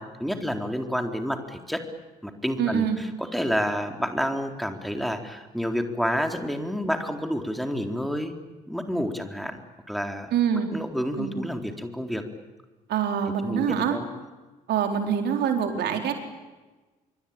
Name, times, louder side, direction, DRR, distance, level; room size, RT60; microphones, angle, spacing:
voice 1, 0.0-1.9 2.2-8.4 8.7-9.6 9.9-10.3 10.7-12.2 13.4-14.1, equal, ahead, 4 dB, 4.2 m, -29 dB
voice 2, 2.6-3.0 10.3-10.7 11.2-11.3 12.9-14.0 14.7-16.1, right 8 dB, 60° right, 4 dB, 4.3 m, -25 dB
26.5 x 24.0 x 9.0 m, 1.2 s
figure-of-eight pair, 50°, 20 cm